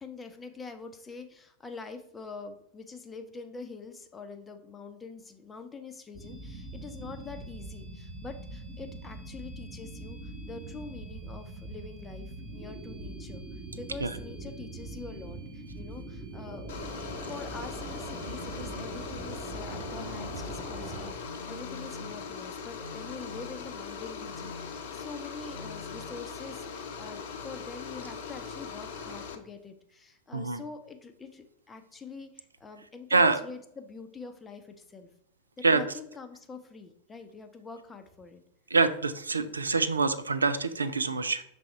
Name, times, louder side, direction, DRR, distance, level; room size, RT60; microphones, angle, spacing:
voice 1, 0.0-13.4 13.8-16.7 16.9-35.1 35.6-38.4, left 4 dB, 15° left, 6 dB, 0.7 m, -45 dB
sound 1, 6.1-21.1, right 2 dB, 20° right, 1.9 m, -42 dB
sound 2, 16.7-29.4, left 5 dB, 50° left, 0.7 m, -40 dB
sound 3, 18.1-19.2 19.7-20.7 21.2-22.3 22.8-23.8 24.2-24.9 25.5-26.3, left 2 dB, 90° left, 0.5 m, -46 dB
voice 2, 33.1-33.4 35.6-35.8 38.7-41.4, right 3 dB, 75° right, 11 dB, 0.4 m, -25 dB
6.3 x 3.4 x 4.5 m, 0.72 s
figure-of-eight pair, 90°, 0 cm